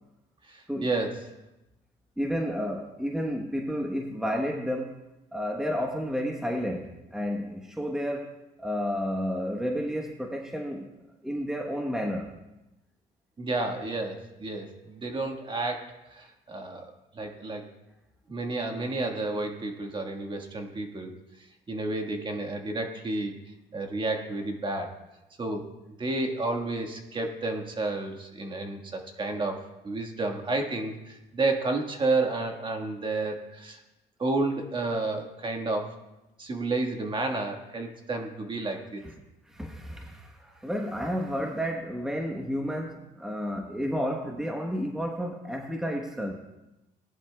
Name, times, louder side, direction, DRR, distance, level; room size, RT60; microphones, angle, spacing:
voice 1, 0.5-1.2 13.4-16.9 17.1-17.7 18.3-21.1 21.7-23.3 23.7-25.0 25.4-25.6 26.0-33.8 34.2-36.0 36.4-39.0, right 2 dB, 30° right, 3 dB, 1.6 m, -31 dB
voice 2, 2.2-5.0 5.3-8.3 8.6-10.9 11.2-12.3 39.0-39.1 39.5-46.3, equal, 5° right, 1 dB, 1.1 m, -31 dB
18.0 x 11.5 x 2.3 m, 0.98 s
cardioid pair, 110°, 17 cm